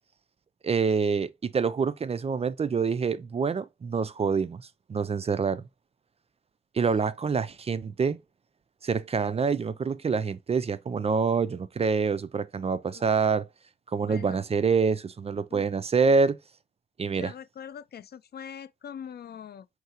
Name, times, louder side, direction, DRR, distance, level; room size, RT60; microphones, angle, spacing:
voice 1, 0.6-5.6 6.7-8.2 8.8-13.5 13.9-16.4 17.0-17.3, right 5 dB, 35° right, 0.3 m, -26 dB
voice 2, 14.1-14.4 15.5-15.6 17.1-19.7, left 8 dB, 55° left, 0.4 m, -43 dB
4.7 x 3.2 x 2.8 m
wide cardioid pair, 135°, 19 cm